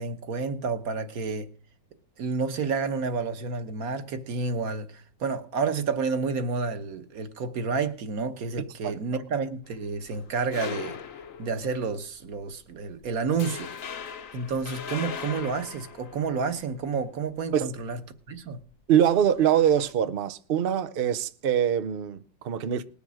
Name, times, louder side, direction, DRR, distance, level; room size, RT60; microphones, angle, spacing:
voice 1, 0.0-1.5 2.2-11.0 11.4-13.7 14.0-18.0 18.3-18.6, right 4 dB, 55° right, 1.5 m, -30 dB
sound 1, 9.6-11.9 12.3-12.5 12.9-13.1 13.4-16.9 18.9-19.9, left 7 dB, 55° left, 1.0 m, -39 dB
voice 2, 18.9-22.8, right 9 dB, 85° right, 0.5 m, -23 dB
19.5 x 7.0 x 6.3 m
omnidirectional pair, 2.0 m